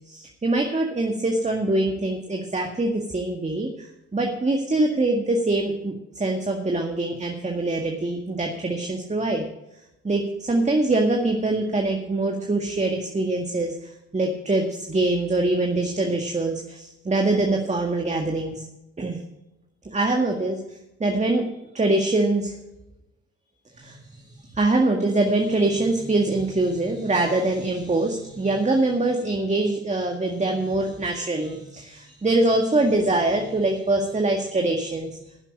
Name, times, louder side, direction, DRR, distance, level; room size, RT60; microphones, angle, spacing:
voice 1, 0.1-9.4 10.0-18.7 19.0-19.2 19.9-20.6 21.0-21.5 21.7-22.5 23.8-35.1, right 2 dB, 25° right, 2 dB, 2.0 m, -24 dB
10.5 x 7.3 x 8.4 m, 0.92 s
supercardioid pair, 55°, 30 cm